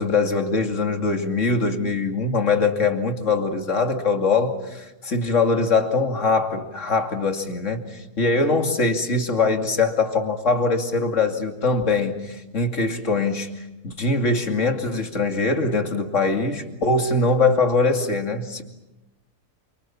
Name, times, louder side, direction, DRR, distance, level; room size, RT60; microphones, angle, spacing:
voice 1, 0.0-13.5 13.8-18.6, left 3 dB, 50° left, 5 dB, 2.9 m, -22 dB
28.5 x 26.0 x 7.3 m, 0.98 s
omnidirectional pair, 1.7 m